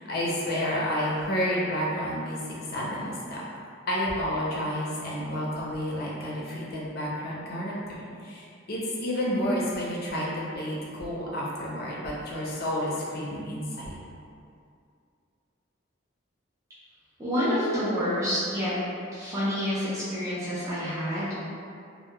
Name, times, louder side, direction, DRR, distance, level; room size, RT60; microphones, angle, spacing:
voice 1, 0.0-2.4 2.7-3.4 3.9-14.0, equal, 50° left, -5 dB, 0.5 m, -30 dB
voice 2, 17.2-18.7 19.1-21.5, equal, 15° right, -12 dB, 0.6 m, -28 dB
2.2 x 2.1 x 2.9 m, 2.4 s
head